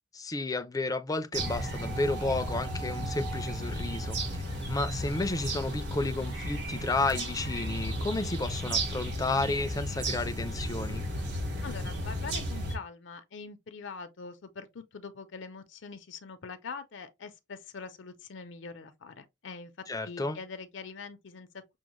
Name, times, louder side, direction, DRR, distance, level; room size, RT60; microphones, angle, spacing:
voice 1, 0.2-4.4 4.7-11.0 19.9-20.4, left 2 dB, 20° left, 0.4 m, -32 dB
sound 1, 1.3-12.7, right 1 dB, 65° right, 2.6 m, -34 dB
voice 2, 11.6-19.7 20.0-21.8, left 4 dB, 70° left, 0.6 m, -43 dB
6.1 x 2.1 x 3.0 m
head